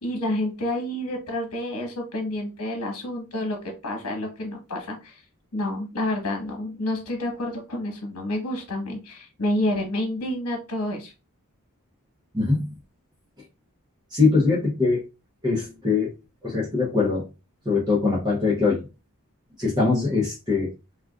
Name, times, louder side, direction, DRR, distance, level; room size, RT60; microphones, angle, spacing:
voice 1, 0.0-5.2 5.5-11.1, left 1 dB, 90° left, 2 dB, 1.2 m, -29 dB
voice 2, 12.3-12.7 14.1-15.0 15.4-16.1 16.4-17.2 17.7-18.8 19.6-20.7, left 4 dB, 20° right, -5 dB, 0.7 m, -22 dB
3.5 x 2.3 x 2.4 m, 0.29 s
head